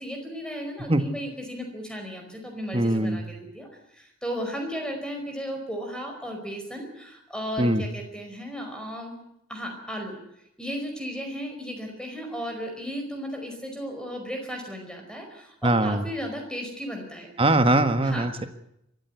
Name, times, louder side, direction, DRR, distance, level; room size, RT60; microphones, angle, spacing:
voice 1, 0.0-3.7 3.9-9.1 9.5-10.2 10.6-17.3 18.0-18.3, equal, 5° left, 3 dB, 4.8 m, -35 dB
voice 2, 2.7-3.2 7.6-7.8 15.6-16.0 17.4-18.5, right 1 dB, 25° right, 8 dB, 1.5 m, -21 dB
23.0 x 14.0 x 9.4 m, 0.80 s
head